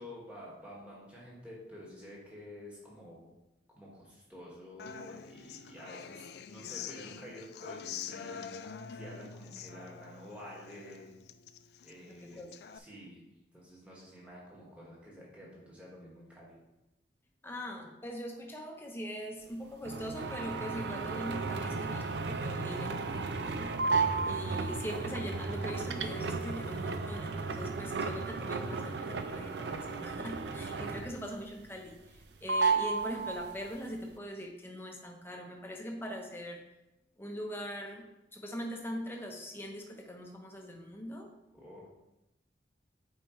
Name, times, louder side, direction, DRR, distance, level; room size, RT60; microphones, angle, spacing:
voice 1, 0.0-3.3 3.7-8.4 8.9-11.1 11.8-13.2 13.5-16.5 41.5-41.9, equal, 5° right, -6 dB, 1.7 m, -50 dB
Human voice / Acoustic guitar, 4.8-12.8, left 7 dB, 60° left, 0.3 m, -45 dB
voice 2, 12.1-12.5 17.4-24.0 24.2-36.6 37.2-41.3, equal, 10° left, 1 dB, 0.8 m, -42 dB
sound 1, 19.8-31.3 31.7-32.2 32.5-33.8, right 4 dB, 65° right, 0.5 m, -34 dB
7.9 x 4.6 x 3.1 m, 0.93 s
head